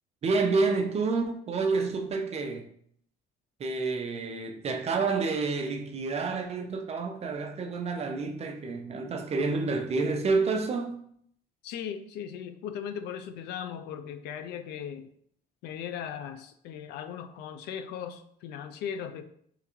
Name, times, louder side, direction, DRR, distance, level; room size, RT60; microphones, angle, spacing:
voice 1, 0.2-2.7 3.6-11.0, right 4 dB, 40° right, 0.6 m, -29 dB
voice 2, 11.6-15.1 15.6-19.3, left 8 dB, 80° left, 0.4 m, -38 dB
3.7 x 3.4 x 3.0 m
cardioid pair, 110°, 17 cm